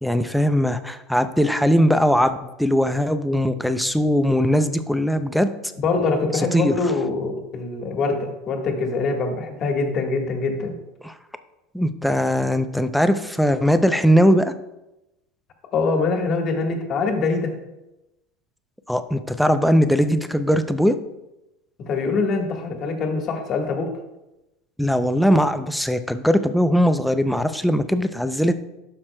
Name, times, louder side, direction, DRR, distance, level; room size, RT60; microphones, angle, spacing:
voice 1, 0.0-5.5 6.3-6.8 11.0-11.1 11.7-14.5 18.9-21.0 24.8-28.5, equal, ahead, 9 dB, 0.4 m, -20 dB
voice 2, 5.8-10.7 15.7-17.5 21.8-23.9, left 3 dB, 40° left, 3 dB, 1.4 m, -24 dB
12.0 x 5.8 x 2.2 m, 0.96 s
supercardioid pair, 125°, 0 cm